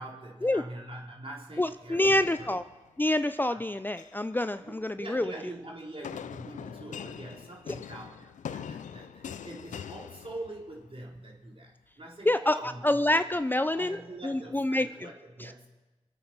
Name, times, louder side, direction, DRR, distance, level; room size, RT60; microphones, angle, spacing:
voice 1, 0.0-2.5 3.5-3.6 4.6-13.3 13.7-15.7, right 1 dB, 45° right, -2 dB, 3.9 m, -44 dB
voice 2, 1.6-2.6 3.0-5.3 12.3-14.0 14.2-14.9 15.4-15.5, left 1 dB, 15° left, 11 dB, 0.5 m, -27 dB
sound 1, 2.0-3.1 3.8-4.3 6.0-10.9, left 8 dB, 80° left, 0.5 m, -43 dB
25.0 x 8.6 x 6.0 m, 1.1 s
cardioid pair, 40°, 13 cm